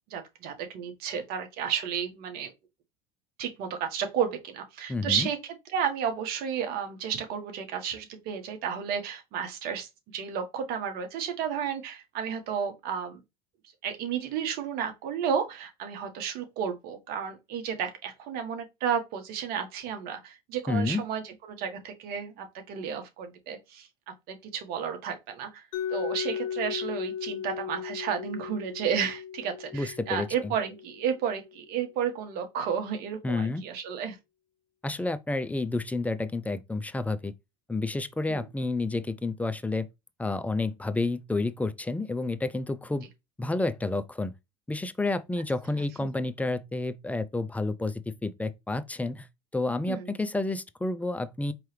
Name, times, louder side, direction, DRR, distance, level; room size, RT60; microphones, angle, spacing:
voice 1, 0.1-2.5 3.4-5.4 5.7-13.2 13.8-23.9 24.3-25.6 25.9-34.2 38.3-38.4 49.9-50.1, right 7 dB, 60° right, 1.3 m, -32 dB
voice 2, 4.9-5.3 20.7-21.0 29.7-30.5 33.2-33.6 34.8-37.3 37.7-39.9 40.2-43.1 43.4-44.3 44.7-49.3 49.5-51.5, left 2 dB, 10° left, 0.4 m, -30 dB
Mallet percussion, 25.7-31.6, left 8 dB, 85° left, 0.7 m, -36 dB
4.6 x 3.0 x 3.2 m
hypercardioid pair, 90°, 17 cm